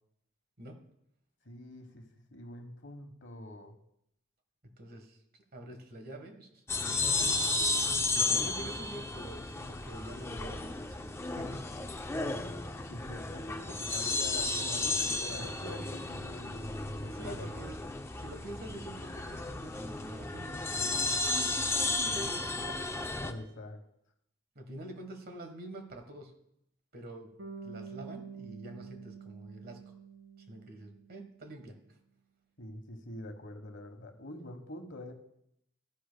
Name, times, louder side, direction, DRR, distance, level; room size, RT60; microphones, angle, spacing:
voice 1, 0.6-0.9 4.6-5.2 5.5-7.4 8.1-10.9 11.2-11.9 12.2-12.4 16.9-17.8 18.2-21.1 21.8-22.9 24.5-26.4 26.9-27.4 27.6-29.9 30.4-32.0, right 1 dB, 50° right, 5 dB, 1.3 m, -47 dB
voice 2, 1.4-3.8 12.9-17.5 23.2-23.8 32.6-35.1, left 1 dB, 60° left, 5 dB, 1.3 m, -45 dB
sound 1, 6.7-23.3, left 2 dB, 15° left, 0.5 m, -33 dB
Bass guitar, 27.4-31.5, right 6 dB, 65° right, 2.0 m, -47 dB
13.0 x 10.0 x 2.2 m, 0.75 s
head